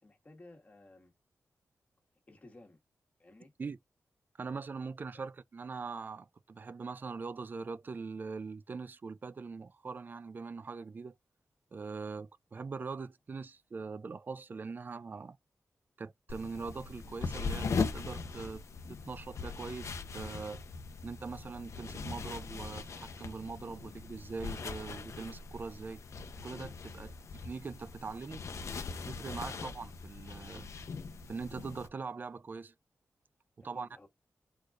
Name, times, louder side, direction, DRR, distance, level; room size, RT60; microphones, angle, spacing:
voice 1, 0.0-1.1 2.3-2.8 3.2-3.5 5.1-5.2 27.0-27.1 33.7-34.1, left 2 dB, 25° left, 1.6 m, -56 dB
voice 2, 4.4-11.2 11.7-15.4 16.0-18.6 18.9-20.6 21.0-26.0 26.4-27.1 27.4-28.5 29.0-30.7 31.3-32.7 33.6-33.9, right 4 dB, 35° right, 0.3 m, -42 dB
sound 1, 16.3-31.9, left 4 dB, 60° left, 0.8 m, -40 dB
4.7 x 4.3 x 2.4 m
wide cardioid pair, 175°, 6 cm